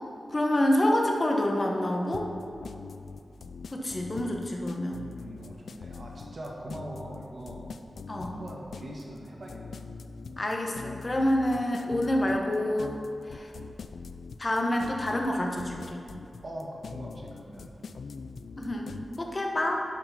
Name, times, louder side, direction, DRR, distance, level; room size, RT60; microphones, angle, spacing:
voice 1, 0.3-2.3 3.7-5.0 8.1-8.3 10.4-12.9 13.2-13.5 14.4-16.0 18.6-19.8, left 1 dB, 30° left, 1 dB, 1.1 m, -27 dB
sound 1, 2.1-19.2, left 5 dB, 85° left, 0.4 m, -42 dB
voice 2, 5.1-7.7 8.1-9.8 16.4-17.7, right 1 dB, 45° right, -2 dB, 1.8 m, -42 dB
11.0 x 5.9 x 5.6 m, 2.6 s
wide cardioid pair, 120°, 0 cm